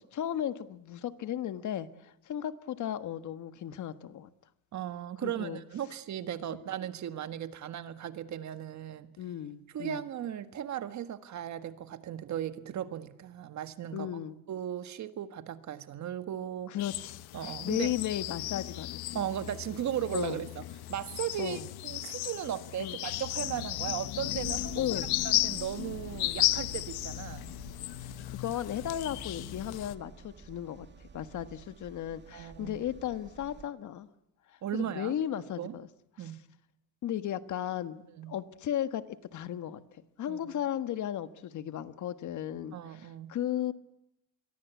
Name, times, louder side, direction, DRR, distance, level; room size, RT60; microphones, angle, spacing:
voice 1, 0.0-4.3 5.2-5.6 9.2-10.0 13.9-14.4 16.7-19.0 20.1-20.4 21.4-21.6 22.8-23.0 24.8-25.1 28.0-34.1 34.5-35.9 36.2-36.3 37.0-39.8 40.2-43.7, left 11 dB, 50° left, 11 dB, 1.5 m, -35 dB
voice 2, 4.7-9.1 9.7-14.1 14.5-16.8 17.3-17.9 19.1-20.6 20.9-27.5 32.3-32.8 34.6-35.2 35.6-35.7 36.2-36.4 38.2-38.3 40.3-40.6 42.7-43.4, right 10 dB, 50° right, 10 dB, 1.8 m, -37 dB
sound 1, 16.8-29.9, left 16 dB, 85° left, 1.1 m, -35 dB
sound 2, 24.3-33.7, right 6 dB, 30° right, 2.1 m, -51 dB
25.5 x 23.0 x 8.3 m, 0.86 s
cardioid pair, 140°, 37 cm